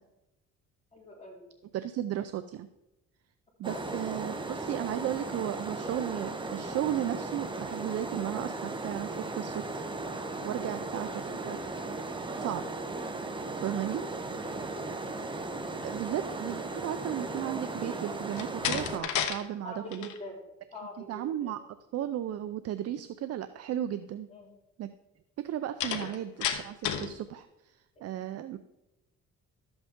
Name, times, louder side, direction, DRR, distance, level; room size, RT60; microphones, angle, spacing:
voice 1, 0.9-1.5 3.7-4.0 10.6-10.8 19.6-20.4 20.7-21.5 24.3-24.5, left 1 dB, 20° left, -4 dB, 3.5 m, -44 dB
voice 2, 1.7-2.7 3.6-9.8 10.4-11.6 12.4-12.6 13.5-14.0 15.1-15.3 15.8-20.1 21.1-24.3 24.8-24.9 25.4-28.6, right 11 dB, 55° right, 12 dB, 0.5 m, -35 dB
sound 1, 3.6-19.0, right 2 dB, 15° right, 0.8 m, -36 dB
Slam, 18.3-19.4 19.7-20.2 25.8-27.1, left 8 dB, 75° left, 1.2 m, -31 dB
12.5 x 7.9 x 3.6 m, 0.94 s
cardioid pair, 130°, 30 cm